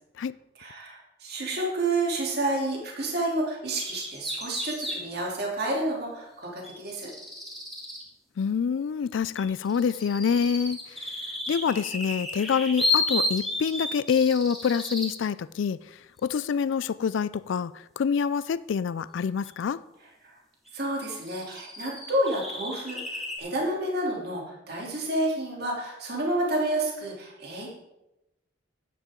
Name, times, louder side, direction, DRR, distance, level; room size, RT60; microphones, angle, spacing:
voice 1, 0.6-7.1 20.2-20.3 20.7-27.7, right 1 dB, 50° right, 3.1 m, -30 dB
sound 1, 3.8-5.0 6.6-8.0 9.4-15.1 19.5-19.6 20.7-20.8 21.2-23.4, left 2 dB, ahead, 2.6 m, -32 dB
voice 2, 8.4-11.1 11.5-15.8 16.2-19.8, left 6 dB, 70° left, 0.3 m, -26 dB
13.5 x 10.0 x 3.8 m
head